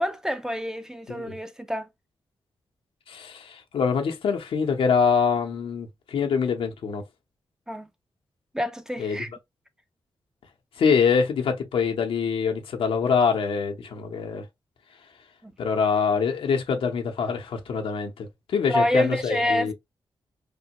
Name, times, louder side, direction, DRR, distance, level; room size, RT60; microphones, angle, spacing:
voice 1, 0.0-1.9 7.7-7.9 8.5-9.3 15.4-15.5 18.7-19.7, left 1 dB, 5° right, 0.4 m, -27 dB
voice 2, 3.1-7.0 9.0-9.2 10.8-14.4 15.6-19.7, left 6 dB, 90° left, 0.8 m, -24 dB
3.4 x 2.2 x 2.8 m
wide cardioid pair, 100°, 9 cm